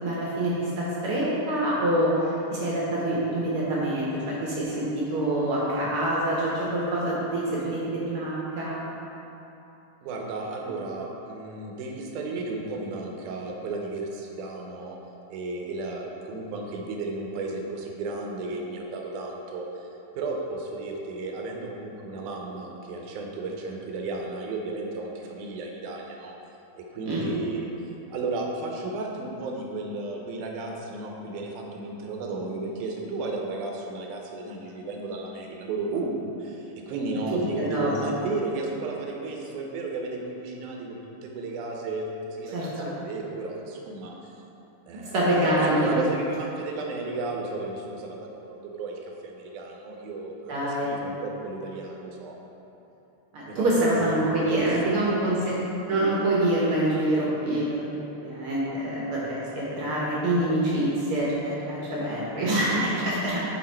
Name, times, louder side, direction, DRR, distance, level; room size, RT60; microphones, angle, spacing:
voice 1, 0.0-8.8 27.0-27.3 37.3-37.9 42.5-42.9 44.9-45.9 50.5-50.9 53.3-55.6 55.9-57.8 58.2-63.5, right 1 dB, 65° right, -6 dB, 1.4 m, -26 dB
voice 2, 10.0-15.0 15.3-19.9 20.1-26.4 26.8-27.7 28.1-41.0 41.2-44.1 44.9-52.4 53.4-55.3, right 3 dB, 85° right, 0 dB, 2.2 m, -33 dB
6.3 x 4.4 x 4.3 m, 3.0 s
omnidirectional pair, 3.4 m